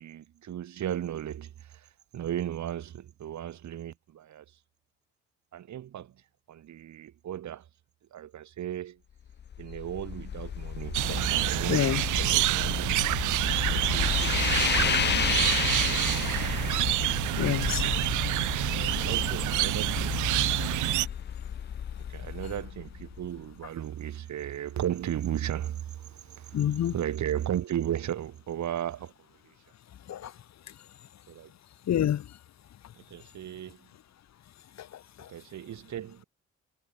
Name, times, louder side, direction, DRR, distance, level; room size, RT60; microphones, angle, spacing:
voice 1, 0.0-1.9 2.1-4.4 5.5-6.1 6.5-7.6 8.1-9.0 9.6-11.1 11.3-13.0 13.6-16.4 17.2-17.6 17.8-18.0 18.9-20.2 22.1-26.6 26.9-29.1 31.3-31.5 33.0-33.9 35.3-36.2, right 11 dB, 70° right, 3.9 m, -36 dB
sound 1, 9.3-23.4, left 8 dB, 35° left, 0.6 m, -32 dB
sound 2, 10.9-21.1, right 17 dB, 85° right, 0.7 m, -27 dB
voice 2, 11.7-12.0 17.4-17.8 18.7-19.2 26.5-26.9 30.1-30.3 31.9-32.4 34.8-35.3, left 11 dB, 60° left, 1.6 m, -29 dB
cardioid pair, 90°, 30 cm